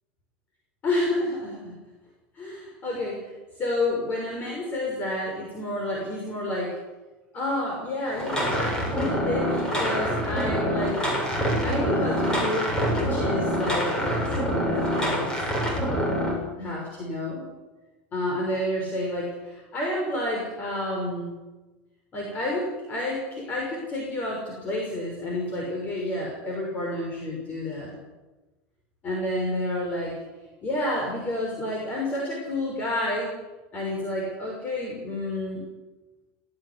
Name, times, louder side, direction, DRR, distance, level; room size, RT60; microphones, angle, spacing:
voice 1, 0.8-1.7 2.3-3.3 3.6-6.8 7.3-11.0 11.6-15.3 16.6-17.5 18.1-21.3 22.1-27.9 29.0-30.2 30.6-33.3 33.7-35.6, left 1 dB, 30° left, -1 dB, 6.3 m, -30 dB
Wooden Crank Handle with rope winding, 8.1-16.3, equal, 15° left, 7.1 m, -26 dB
18.0 x 17.0 x 9.9 m, 1.2 s
supercardioid pair, 150°, 6 cm